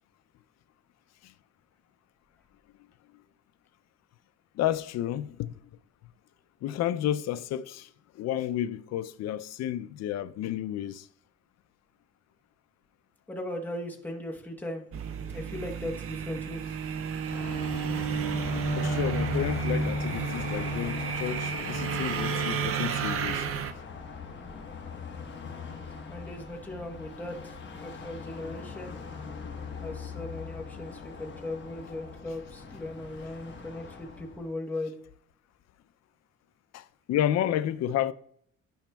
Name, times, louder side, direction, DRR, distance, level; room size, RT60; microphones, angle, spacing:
voice 1, 4.5-5.6 6.6-7.9 8.2-11.1 18.8-23.5 36.7-38.1, left 11 dB, 65° left, 0.4 m, -31 dB
voice 2, 13.3-14.8 15.3-16.6 26.1-29.0 29.8-35.0, left 1 dB, 5° left, 1.0 m, -38 dB
sound 1, 14.9-23.7, right 6 dB, 50° right, 0.5 m, -31 dB
Car passing by, 17.3-34.5, left 5 dB, 40° left, 1.1 m, -39 dB
12.0 x 5.1 x 2.3 m
cardioid pair, 150°, 29 cm